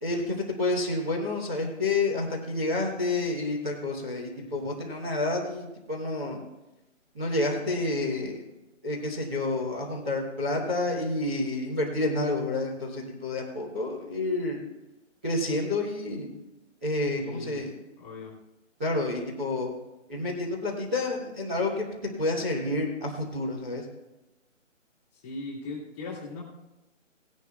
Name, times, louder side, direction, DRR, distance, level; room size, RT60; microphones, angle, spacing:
voice 1, 0.0-6.4 7.1-8.4 8.8-14.6 15.2-16.3 16.8-17.7 18.8-19.7 20.1-21.8 22.2-23.8, left 2 dB, 10° right, -9 dB, 1.1 m, -29 dB
voice 2, 17.2-17.6 18.0-18.3 25.1-26.4, left 3 dB, 10° left, -6 dB, 2.0 m, -39 dB
18.5 x 11.5 x 2.4 m, 0.98 s
hypercardioid pair, 170°, 39 cm